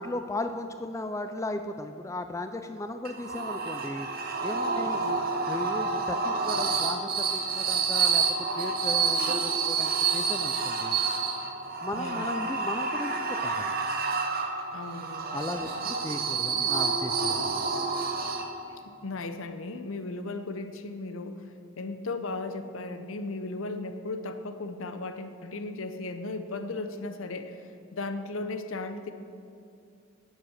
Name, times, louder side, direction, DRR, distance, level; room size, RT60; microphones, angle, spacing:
voice 1, 0.0-4.1 4.4-5.0 5.5-8.3 8.5-11.0 11.8-13.8 15.3-17.7, left 2 dB, 15° left, 8 dB, 0.3 m, -36 dB
sound 1, 3.0-18.8, right 5 dB, 45° right, 0.9 m, -29 dB
voice 2, 11.9-12.5 14.7-15.9 18.8-21.4 21.8-27.6 27.9-29.1, left 3 dB, 75° left, 9 dB, 0.7 m, -36 dB
11.0 x 7.4 x 6.5 m, 2.6 s
head